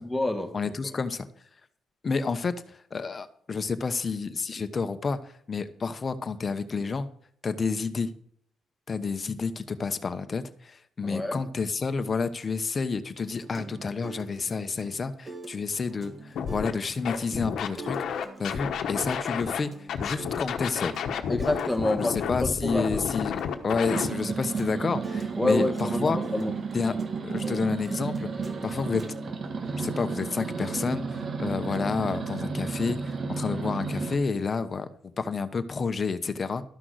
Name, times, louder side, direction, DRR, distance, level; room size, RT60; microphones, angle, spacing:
voice 1, 0.0-0.5 11.0-11.4 21.3-23.0 25.4-26.5, left 2 dB, 5° left, 5 dB, 1.6 m, -28 dB
voice 2, 0.5-1.3 2.0-2.5 2.9-5.2 5.5-7.1 7.4-8.1 8.9-19.7 20.0-21.0 22.0-26.2 26.7-28.3 28.6-29.0 29.8-34.9 35.2-36.6, left 4 dB, 35° left, 10 dB, 1.0 m, -30 dB
sound 1, 13.2-30.9, right 3 dB, 30° right, 1.2 m, -44 dB
Scratching (performance technique), 16.3-16.7 17.0-19.6 19.9-24.1, left 7 dB, 70° left, 1.2 m, -31 dB
sound 2, 23.9-34.2, right 4 dB, 50° right, 1.4 m, -32 dB
13.0 x 6.0 x 6.3 m, 0.63 s
cardioid pair, 90°, 0 cm